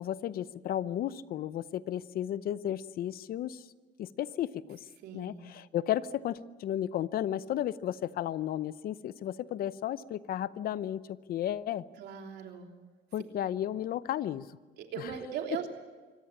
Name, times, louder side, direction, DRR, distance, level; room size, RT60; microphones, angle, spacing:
voice 1, 0.0-3.6 4.0-4.8 5.1-11.8 13.1-14.5, left 11 dB, 60° left, 16 dB, 0.8 m, -33 dB
voice 2, 5.0-5.4 12.0-12.7 14.8-15.7, right 8 dB, 75° right, 3 dB, 3.2 m, -39 dB
24.5 x 17.5 x 8.5 m, 1.4 s
cardioid pair, 110°, 17 cm